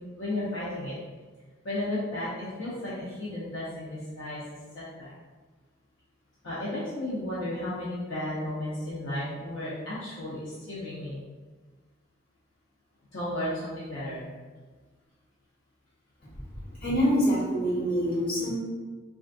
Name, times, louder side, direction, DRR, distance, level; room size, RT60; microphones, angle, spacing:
voice 1, 0.2-0.9 1.6-4.4 4.7-5.1 6.4-11.2 13.1-14.3 18.3-18.5, left 1 dB, 80° left, -9 dB, 0.7 m, -34 dB
voice 2, 16.7-18.6, equal, 50° left, -10 dB, 1.5 m, -26 dB
3.3 x 2.5 x 2.4 m, 1.4 s
head